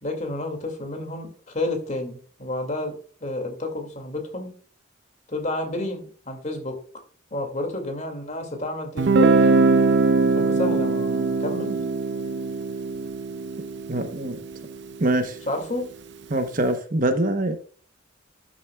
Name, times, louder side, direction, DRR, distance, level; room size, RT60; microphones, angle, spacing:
voice 1, 0.0-2.9 3.2-4.5 5.3-6.8 7.3-9.3 10.1-11.8 15.5-15.9, left 2 dB, 35° left, 4 dB, 2.2 m, -30 dB
Guitar, 9.0-14.7, right 3 dB, 55° right, 0.5 m, -21 dB
voice 2, 13.9-14.4 15.0-15.4 16.3-17.6, right 1 dB, 40° right, 8 dB, 0.9 m, -24 dB
12.0 x 7.0 x 2.3 m, 0.42 s
head